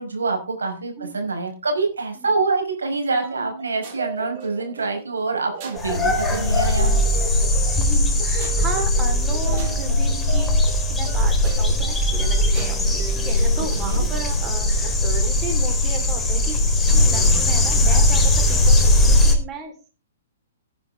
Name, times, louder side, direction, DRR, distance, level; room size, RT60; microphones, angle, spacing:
voice 1, 0.0-7.0 13.6-14.0, right 3 dB, 75° right, 3 dB, 5.4 m, -26 dB
sound 1, 3.2-15.4, right 5 dB, 40° right, 6.7 m, -37 dB
sound 2, 5.8-19.3, left 1 dB, 10° left, 3.9 m, -19 dB
voice 2, 7.8-10.6 10.9-16.6 16.9-19.9, right 5 dB, 20° right, 3 dB, 4.0 m, -34 dB
18.5 x 10.0 x 3.6 m, 0.33 s
figure-of-eight pair, 115°, 0 cm